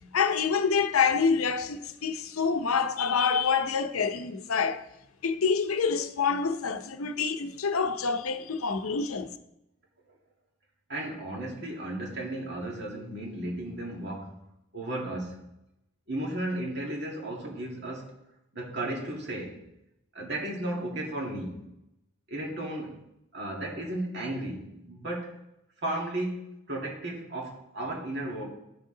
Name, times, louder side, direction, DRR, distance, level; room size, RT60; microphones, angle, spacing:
voice 1, 0.0-4.8 5.2-9.3, left 5 dB, 90° left, 0.7 m, -27 dB
voice 2, 10.9-14.4 14.7-15.4 16.1-18.1 18.5-19.6 20.1-21.7 22.3-23.0 23.3-25.3 25.8-28.4, right 1 dB, 55° right, 2.0 m, -34 dB
12.0 x 6.5 x 3.9 m
head